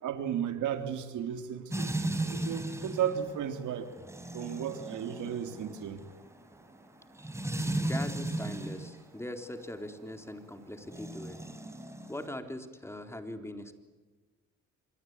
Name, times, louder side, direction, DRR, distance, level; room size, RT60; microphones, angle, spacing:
voice 1, 0.0-1.9 2.3-3.9 4.3-6.0, right 9 dB, 75° right, 7 dB, 3.5 m, -34 dB
sound 1, 1.7-9.0 10.8-12.3, right 1 dB, 10° right, 4.7 m, -36 dB
voice 2, 7.7-11.4 12.1-13.7, left 1 dB, 10° left, 7 dB, 3.9 m, -41 dB
26.5 x 23.5 x 9.5 m, 1.3 s
cardioid pair, 90°, 30 cm